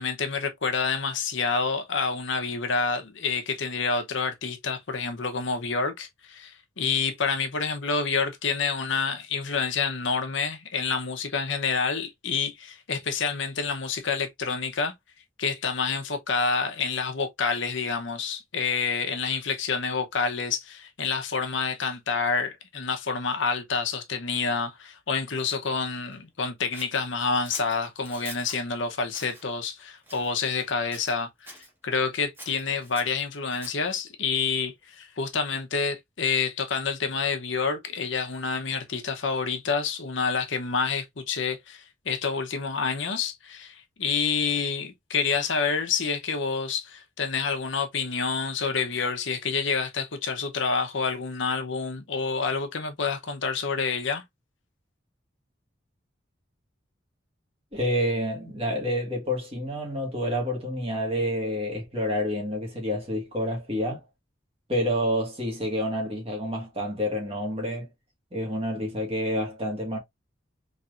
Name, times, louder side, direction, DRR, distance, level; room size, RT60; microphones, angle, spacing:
voice 1, 0.0-14.9 15.4-31.6 31.8-54.2, left 5 dB, 75° left, 0.9 m, -28 dB
Scissors, 26.7-28.6 29.1-29.4 30.0-30.7 30.9-31.7 32.3-33.9, right 1 dB, 10° right, 1.3 m, -44 dB
voice 2, 57.7-64.0 64.7-67.9 68.3-70.0, equal, 30° right, 1.7 m, -28 dB
4.3 x 3.2 x 2.5 m
head